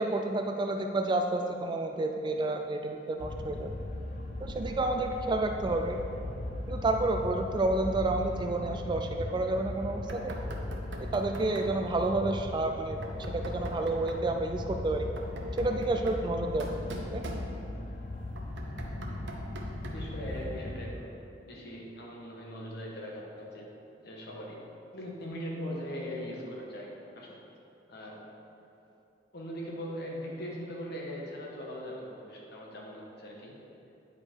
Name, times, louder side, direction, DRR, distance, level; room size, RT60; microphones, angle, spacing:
voice 1, 0.0-3.8 4.4-6.0 6.7-10.4 11.0-13.0 13.3-15.1 15.6-16.7 17.1-17.2, right 2 dB, 25° right, 4 dB, 0.3 m, -30 dB
sound 1, 3.2-20.8, left 1 dB, 45° left, 0.7 m, -38 dB
Knock, 10.1-11.8 13.0-14.3 15.0-17.9 18.4-20.2, right 1 dB, 70° right, 0.8 m, -43 dB
voice 2, 19.0-19.4 19.9-21.2 21.5-23.7 24.0-24.7 24.9-27.4 27.9-28.3 29.3-33.5, equal, 60° left, -2 dB, 1.3 m, -40 dB
9.6 x 4.7 x 4.5 m, 2.8 s
head